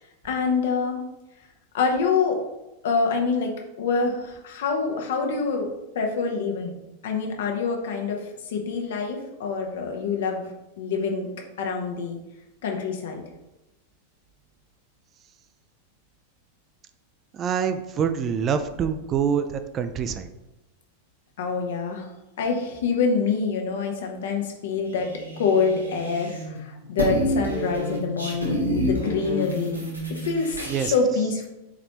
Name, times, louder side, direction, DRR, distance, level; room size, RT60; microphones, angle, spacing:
voice 1, 0.2-1.0 1.7-2.4 2.8-3.5 3.8-5.7 5.9-6.8 7.0-10.5 10.8-11.3 11.6-12.2 12.6-13.2 21.4-22.1 22.4-25.1 25.4-29.8 30.1-31.5, left 5 dB, 60° left, 2 dB, 0.8 m, -26 dB
voice 2, 17.3-20.3 30.7-30.9, right 7 dB, 30° right, 9 dB, 0.3 m, -25 dB
sound 1, 24.9-26.6 26.8-30.9, equal, 90° right, 1.1 m, -29 dB
4.2 x 4.1 x 2.9 m, 0.96 s
figure-of-eight pair, 90°, 0 cm